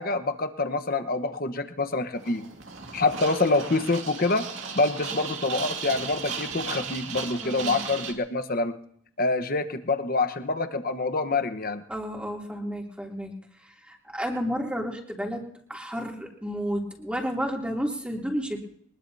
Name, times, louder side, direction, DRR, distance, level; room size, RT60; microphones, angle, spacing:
voice 1, 0.0-2.5 2.9-4.5 4.7-8.7 9.2-11.8, left 3 dB, 50° left, 9 dB, 1.2 m, -26 dB
sound 1, 2.1-8.1, right 6 dB, 70° right, 2.4 m, -36 dB
voice 2, 7.4-7.8 11.9-13.3 13.6-18.6, equal, 5° right, -1 dB, 2.9 m, -32 dB
23.0 x 21.0 x 2.8 m, 0.68 s
head